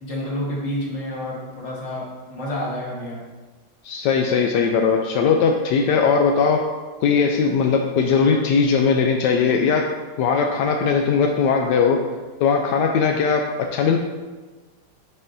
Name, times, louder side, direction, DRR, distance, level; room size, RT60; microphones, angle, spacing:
voice 1, 0.0-3.2, left 1 dB, 40° left, -4 dB, 1.6 m, -29 dB
voice 2, 3.8-6.6 7.0-9.8 10.2-12.0 12.4-13.4 13.7-14.0, left 5 dB, 75° left, 2 dB, 1.0 m, -19 dB
10.5 x 4.3 x 2.6 m, 1.3 s
omnidirectional pair, 2.3 m